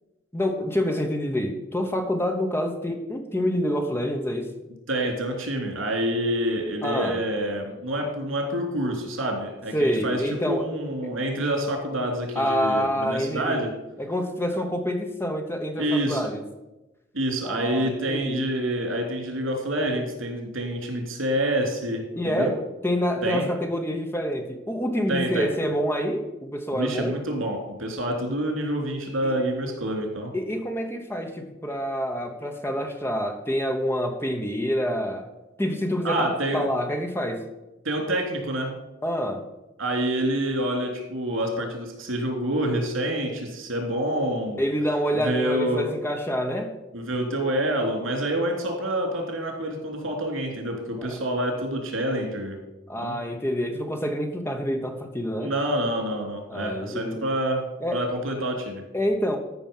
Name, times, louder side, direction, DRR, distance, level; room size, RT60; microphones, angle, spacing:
voice 1, 0.3-4.5 6.8-7.2 9.7-10.7 11.0-11.1 12.3-13.6 14.0-16.4 17.4-18.5 22.2-22.6 22.8-27.1 29.2-29.3 30.3-35.3 35.6-36.3 36.5-37.4 39.0-39.4 44.6-46.7 51.0-51.1 52.9-55.5 56.5-57.2 57.8-58.0 58.9-59.4, equal, 10° left, 4 dB, 1.0 m, -27 dB
voice 2, 4.9-13.7 15.8-16.3 17.1-22.5 23.2-23.5 25.1-25.5 26.7-30.3 36.0-36.7 37.8-38.7 39.8-44.6 45.1-45.8 46.9-52.6 53.0-53.2 55.4-57.6 57.9-58.8, right 1 dB, 85° right, 2 dB, 3.3 m, -27 dB
13.0 x 6.0 x 5.5 m, 1.0 s
head